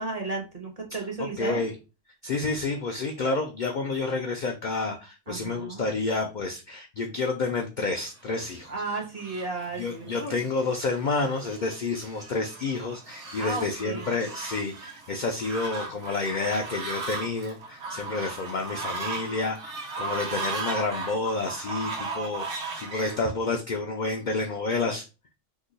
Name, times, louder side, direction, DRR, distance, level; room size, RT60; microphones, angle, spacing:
voice 1, 0.0-1.6 5.3-5.9 8.7-10.4 13.4-14.1, right 3 dB, 40° right, 0 dB, 0.7 m, -34 dB
voice 2, 1.2-1.7 2.2-8.7 9.8-25.1, left 3 dB, 65° left, 3 dB, 0.4 m, -29 dB
Fowl, 8.4-23.2, right 3 dB, 65° right, 1.1 m, -37 dB
2.9 x 2.3 x 3.8 m, 0.30 s
omnidirectional pair, 1.3 m